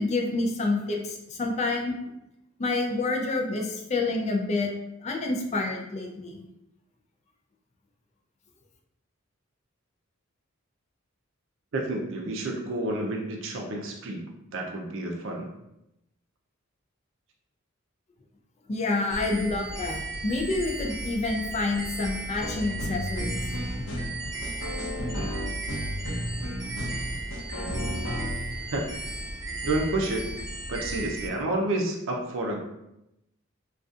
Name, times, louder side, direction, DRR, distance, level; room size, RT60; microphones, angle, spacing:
voice 1, 0.0-2.0 2.6-4.7 5.0-6.4 18.7-23.4, left 3 dB, 35° left, 1 dB, 0.4 m, -28 dB
voice 2, 11.7-14.3 14.5-15.5 28.7-28.9 29.6-30.3 30.7-32.6, right 2 dB, 65° right, 1 dB, 0.5 m, -29 dB
sound 1, 19.1-31.3, right 2 dB, 20° right, 0.5 m, -36 dB
sound 2, 22.4-28.8 29.5-29.6, equal, 70° left, 0.7 m, -33 dB
2.6 x 2.3 x 2.4 m, 0.86 s
head